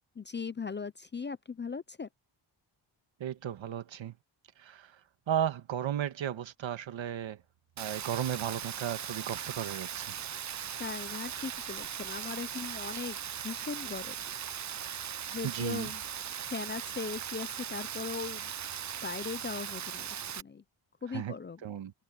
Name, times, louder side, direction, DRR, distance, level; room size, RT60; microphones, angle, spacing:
voice 1, 0.2-2.1 10.8-13.2 13.4-14.1 15.3-16.0 16.5-18.5 19.0-20.1 20.4-20.6 21.0-21.6, left 5 dB, 25° left, 0.5 m, -38 dB
voice 2, 3.2-4.1 4.6-5.0 5.3-7.4 7.8-10.1 15.1-15.2 15.4-15.9 21.1-21.3 21.6-21.9, right 10 dB, 75° right, 1.7 m, -35 dB
Rain, 7.8-20.4, right 9 dB, 40° right, 0.6 m, -39 dB
wide cardioid pair, 130°, 46 cm